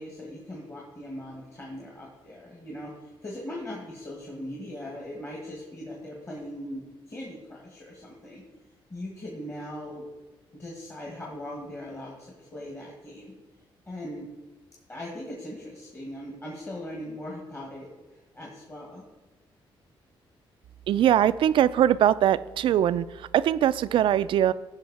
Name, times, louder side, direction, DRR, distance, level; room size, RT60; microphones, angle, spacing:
voice 1, 0.0-2.9 3.2-8.4 8.9-10.1 10.5-13.3 13.9-14.3 14.9-17.9 18.3-19.0, left 1 dB, 30° left, -2 dB, 1.8 m, -39 dB
voice 2, 20.9-24.5, right 11 dB, 65° right, 16 dB, 0.4 m, -22 dB
15.5 x 5.4 x 4.2 m, 1.2 s
cardioid pair, 125°, 9 cm